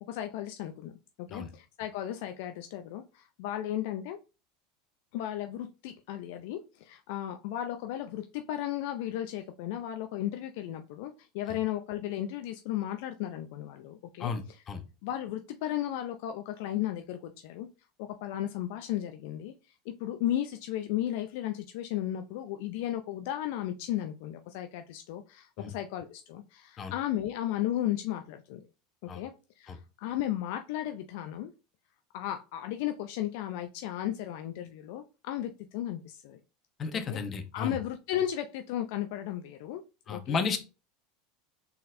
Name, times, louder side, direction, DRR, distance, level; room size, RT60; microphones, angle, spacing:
voice 1, 0.1-0.9 1.2-4.2 5.1-14.6 15.0-17.7 18.0-19.5 20.0-28.7 29.0-31.5 32.1-36.4 36.9-37.2 37.5-39.8 40.1-40.4, left 12 dB, 70° left, 7 dB, 0.4 m, -35 dB
voice 2, 36.8-37.8 40.1-40.6, left 5 dB, 35° left, 8 dB, 0.9 m, -33 dB
4.1 x 4.0 x 2.5 m, 0.30 s
hypercardioid pair, 95°, 0 cm